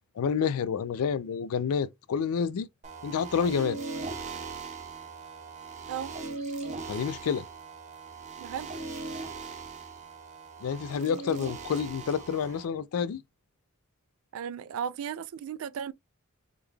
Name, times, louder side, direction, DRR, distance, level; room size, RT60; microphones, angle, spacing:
voice 1, 0.2-2.7 3.0-3.8 6.9-7.5 10.6-13.2, left 6 dB, 85° left, 0.4 m, -29 dB
sound 1, 2.8-12.7, right 4 dB, 35° right, 0.7 m, -39 dB
voice 2, 8.4-8.7 14.3-15.9, right 8 dB, 75° right, 0.3 m, -35 dB
3.6 x 2.2 x 3.2 m
head